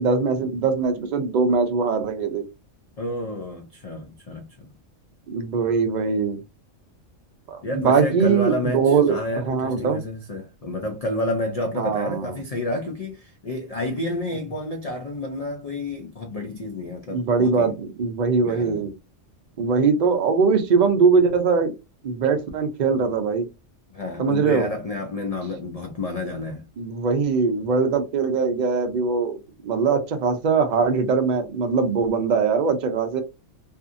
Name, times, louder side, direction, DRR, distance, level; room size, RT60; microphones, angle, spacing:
voice 1, 0.0-2.5 5.3-6.4 7.5-9.2 9.5-10.0 11.8-12.3 17.1-18.9 19.6-21.7 22.0-23.5 24.2-24.7 26.8-33.2, right 5 dB, 55° right, 0.5 m, -21 dB
voice 2, 3.0-4.7 7.6-17.7 18.4-18.8 23.9-26.7, left 1 dB, 75° left, 0.3 m, -30 dB
2.6 x 2.5 x 2.5 m
omnidirectional pair, 1.3 m